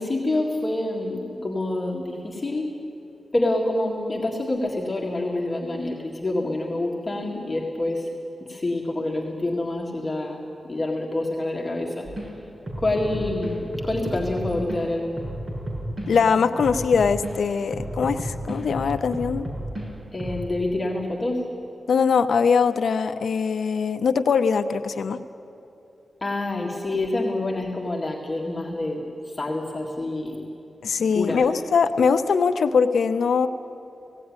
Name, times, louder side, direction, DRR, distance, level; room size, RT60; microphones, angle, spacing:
voice 1, 0.0-2.7 3.3-8.1 8.4-12.1 12.8-15.2 20.1-21.4 26.2-30.5 31.1-31.5, left 2 dB, 25° left, -2 dB, 1.9 m, -27 dB
sound 1, 12.1-12.3 12.7-14.8 15.2-17.3 17.7-19.8 20.2-20.4, right 1 dB, 35° right, 5.9 m, -32 dB
voice 2, 16.1-19.5 21.9-25.2 30.8-33.5, left 5 dB, 85° left, 9 dB, 0.8 m, -21 dB
17.0 x 17.0 x 9.7 m, 2.8 s
wide cardioid pair, 150°, 0 cm